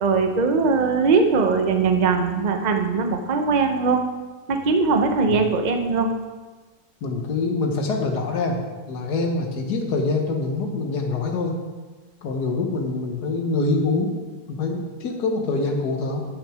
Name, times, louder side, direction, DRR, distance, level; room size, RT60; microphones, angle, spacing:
voice 1, 0.0-4.0 4.5-6.1, right 4 dB, 80° right, 5 dB, 0.4 m, -20 dB
voice 2, 7.0-8.6 8.9-11.6 12.2-14.2 14.5-16.3, left 3 dB, 60° left, 2 dB, 1.7 m, -25 dB
11.0 x 6.3 x 4.9 m, 1.3 s
omnidirectional pair, 2.0 m